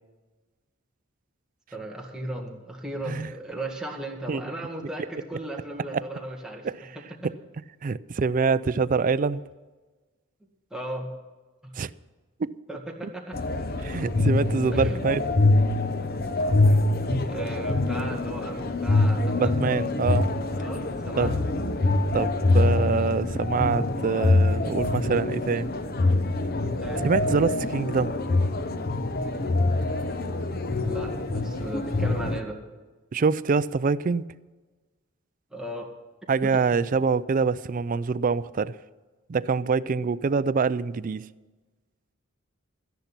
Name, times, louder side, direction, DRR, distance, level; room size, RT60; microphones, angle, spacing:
voice 1, 1.7-6.7 7.2-7.3 10.7-11.2 11.6-11.7 12.7-13.4 14.7-15.0 17.3-19.6 20.6-21.3 26.8-27.0 30.8-32.6 35.5-35.9 36.4-36.6, right 1 dB, 5° right, 1.8 m, -36 dB
voice 2, 7.8-9.4 11.8-11.9 12.4-12.5 13.0-13.1 13.8-15.2 19.4-20.3 21.2-21.4 22.1-25.7 26.9-28.2 33.1-34.2 36.3-38.7 39.3-41.3, right 5 dB, 40° right, 0.4 m, -25 dB
sound 1, 13.3-32.4, left 2 dB, 45° left, 0.8 m, -25 dB
13.5 x 10.5 x 6.0 m
head